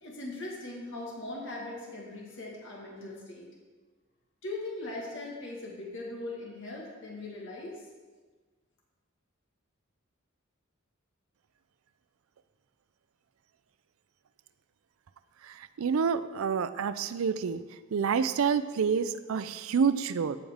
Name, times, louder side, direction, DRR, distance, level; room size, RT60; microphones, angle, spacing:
voice 1, 0.0-3.5 4.4-7.8, left 2 dB, 65° left, -3 dB, 1.8 m, -40 dB
voice 2, 15.8-17.6 17.9-20.4, right 6 dB, 75° right, 13 dB, 0.4 m, -28 dB
15.5 x 5.3 x 3.6 m, 1.4 s
head